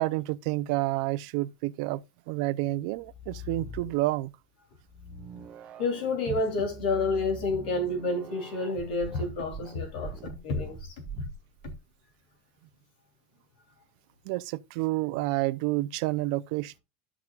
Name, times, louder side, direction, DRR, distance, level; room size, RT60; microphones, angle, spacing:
voice 1, 0.0-2.0 2.3-4.3 14.3-16.8, right 18 dB, 55° right, 0.5 m, -29 dB
sound 1, 2.9-4.3 4.8-11.8, right 3 dB, 30° right, 0.8 m, -43 dB
voice 2, 5.8-10.9, left 3 dB, 75° left, 3.3 m, -29 dB
12.5 x 6.0 x 2.4 m
supercardioid pair, 160°, 5 cm